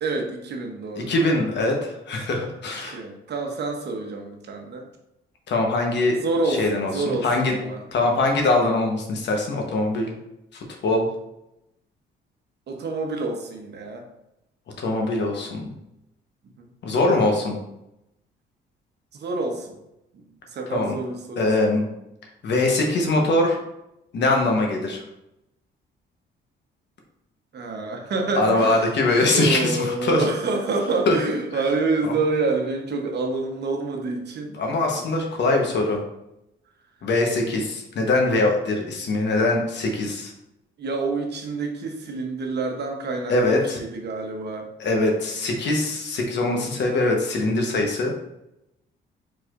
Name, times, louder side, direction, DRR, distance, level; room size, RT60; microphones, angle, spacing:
voice 1, 0.0-1.1 2.8-4.9 6.2-7.8 12.7-14.0 16.6-16.7 19.2-19.8 20.5-21.5 27.5-34.5 34.9-35.0 40.8-44.7, right 3 dB, 55° right, 3 dB, 1.0 m, -27 dB
voice 2, 1.0-3.0 5.5-6.2 6.5-7.5 7.9-10.1 10.5-11.1 14.8-15.7 16.8-17.6 20.7-20.9 21.4-21.9 22.4-23.6 24.1-25.0 28.4-30.2 31.1-31.2 32.0-32.1 34.5-36.0 37.0-40.3 43.3-43.8 44.8-48.1, left 2 dB, 60° left, 1 dB, 1.1 m, -22 dB
4.6 x 4.2 x 2.5 m, 0.87 s
cardioid pair, 90°, 20 cm